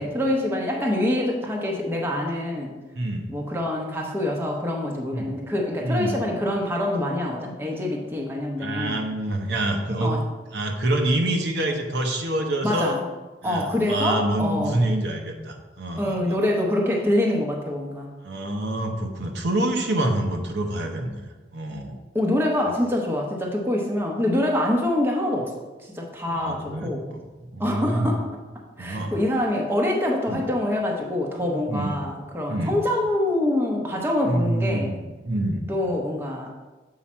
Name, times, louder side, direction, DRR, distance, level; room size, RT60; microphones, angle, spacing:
voice 1, 0.0-2.7 3.3-9.0 10.0-10.2 12.6-13.0 13.4-14.8 16.0-18.1 22.1-25.5 25.8-27.1 27.6-28.3 28.8-34.9 35.7-36.5, left 1 dB, 10° right, -1 dB, 0.8 m, -25 dB
voice 2, 3.0-3.3 5.1-5.3 5.8-6.1 8.6-10.1 10.5-13.0 13.4-16.2 18.2-21.2 21.5-22.0 26.3-27.2 27.5-28.1 28.8-29.1 30.3-30.4 31.7-32.0 32.5-32.7 34.3-35.7, right 1 dB, 60° right, 3 dB, 0.8 m, -26 dB
7.4 x 4.8 x 4.3 m, 1.2 s
head